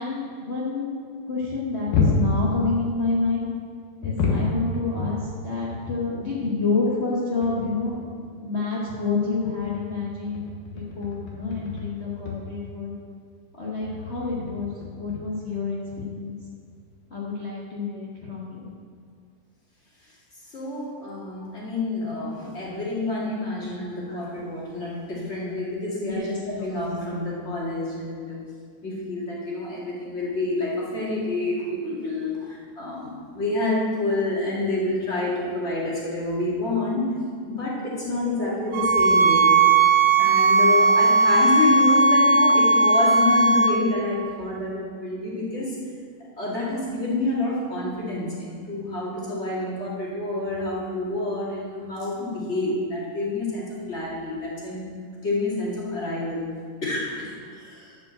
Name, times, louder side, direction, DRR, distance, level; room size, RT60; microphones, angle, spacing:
voice 1, 0.0-3.5 4.0-13.0 13.5-16.4 17.1-18.7 21.4-21.6 22.5-22.6 23.7-24.2 24.8-24.9 26.0-26.7, left 4 dB, 65° left, -6 dB, 0.6 m, -29 dB
sound 1, 1.5-3.0 4.0-6.1 6.4-6.5 7.0-7.1 7.4-8.0 9.4-12.0 12.3-12.5 13.8-15.2 16.4-16.5 16.7-16.9, left 3 dB, 85° left, 2.8 m, -28 dB
voice 2, 20.5-28.4 28.8-37.1 37.5-39.6 40.2-45.8 46.4-54.8 55.2-56.5 56.8-58.0, left 2 dB, 25° left, -6 dB, 2.0 m, -28 dB
sound 2, 38.7-43.7, right 3 dB, 75° right, 2.1 m, -17 dB
10.5 x 5.1 x 7.7 m, 2.1 s
omnidirectional pair, 3.6 m